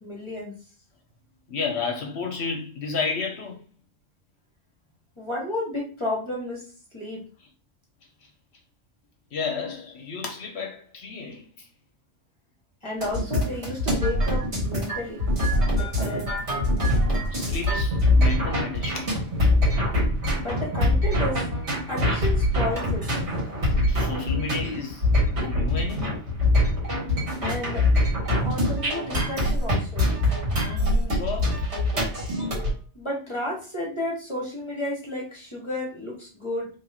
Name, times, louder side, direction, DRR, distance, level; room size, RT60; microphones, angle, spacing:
voice 1, 0.0-0.5 5.2-6.6 6.9-7.2 12.8-15.2 15.8-16.3 20.3-21.4 21.9-23.1 27.4-27.9 28.4-30.1 32.9-36.7, left 1 dB, 25° left, 1.3 m, -32 dB
voice 2, 1.5-3.6 9.3-11.6 16.8-17.0 17.3-19.1 23.9-25.1 25.3-26.2 30.4-31.7 32.3-32.7, left 4 dB, 65° left, 1.0 m, -32 dB
sound 1, 13.0-32.7, left 1 dB, 65° right, 2.0 m, -24 dB
3.3 x 2.9 x 4.1 m
omnidirectional pair, 1.2 m